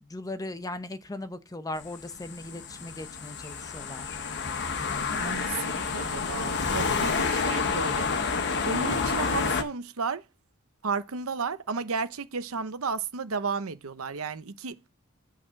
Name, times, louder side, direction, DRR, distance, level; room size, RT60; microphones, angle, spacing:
voice 1, 0.0-4.1, left 2 dB, 15° left, 0.8 m, -38 dB
sound 1, 1.8-9.6, left 5 dB, 55° left, 1.1 m, -29 dB
voice 2, 5.1-8.1 8.6-10.2 10.8-14.8, right 5 dB, 80° right, 0.8 m, -33 dB
8.7 x 4.1 x 6.4 m
head